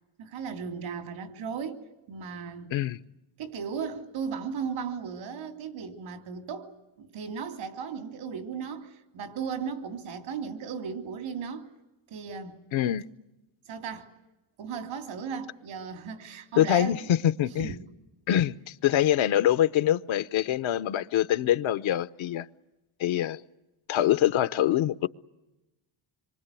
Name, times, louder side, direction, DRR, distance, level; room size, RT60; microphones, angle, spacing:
voice 1, 0.2-2.7 3.4-6.7 7.0-11.7 12.1-12.6 13.7-14.1 14.6-17.1 17.4-17.8, right 6 dB, 90° right, 3.2 m, -36 dB
voice 2, 12.7-13.1 16.6-17.7 18.3-22.5 23.0-23.4 23.9-25.1, left 12 dB, 75° left, 0.9 m, -24 dB
26.5 x 23.5 x 8.3 m
cardioid pair, 115°, 48 cm